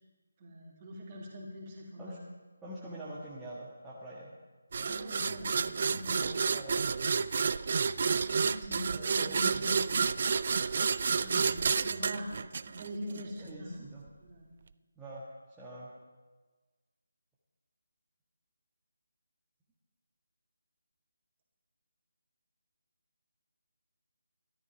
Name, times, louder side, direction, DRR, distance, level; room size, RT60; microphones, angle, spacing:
voice 1, 0.4-2.2 4.8-6.2 8.0-9.9 11.2-12.3 12.7-13.8 14.2-14.5, equal, 25° right, -2 dB, 3.0 m, -43 dB
voice 2, 2.6-4.3 5.9-7.4 8.9-9.8 13.4-14.0 14.9-15.2 15.6-15.9, right 1 dB, 5° right, -9 dB, 1.5 m, -45 dB
sound 1, 4.7-13.2, right 5 dB, 40° right, 0.4 m, -30 dB
14.5 x 12.5 x 5.1 m, 1.3 s
figure-of-eight pair, 155°, 0 cm